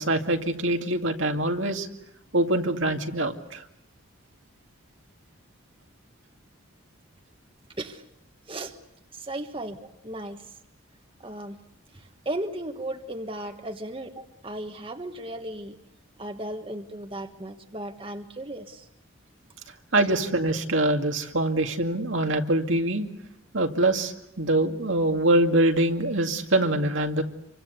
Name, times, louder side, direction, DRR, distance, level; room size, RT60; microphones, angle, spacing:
voice 1, 0.0-1.9 2.3-3.6 19.9-23.1 23.5-27.2, right 1 dB, 70° right, 4 dB, 2.2 m, -24 dB
voice 2, 9.1-9.8 10.0-10.5 11.2-11.6 11.9-15.8 16.2-18.9, right 1 dB, 25° right, 6 dB, 1.4 m, -36 dB
27.0 x 24.5 x 8.2 m, 0.79 s
head